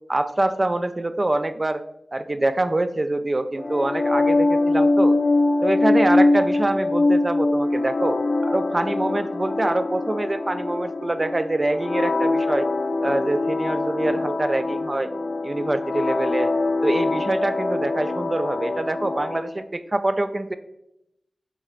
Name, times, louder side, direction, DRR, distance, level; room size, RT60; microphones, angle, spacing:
voice 1, 0.1-1.8 2.1-5.1 5.6-8.2 8.4-12.7 13.0-15.1 15.4-16.5 16.8-20.5, right 2 dB, 35° right, 10 dB, 0.3 m, -25 dB
sound 1, 3.6-19.5, left 2 dB, 60° left, 0.3 m, -23 dB
6.5 x 2.8 x 2.5 m, 0.84 s
cardioid pair, 55°, 0 cm